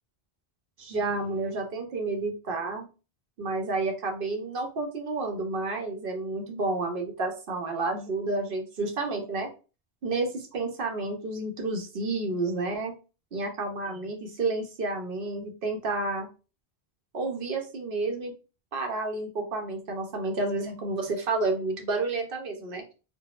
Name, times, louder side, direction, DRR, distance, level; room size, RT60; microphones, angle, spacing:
voice 1, 0.8-2.9 3.4-9.5 10.0-12.9 13.3-16.3 17.1-18.3 18.7-22.8, right 3 dB, 65° right, 3 dB, 0.9 m, -30 dB
3.8 x 2.1 x 2.4 m, 0.33 s
omnidirectional pair, 1.0 m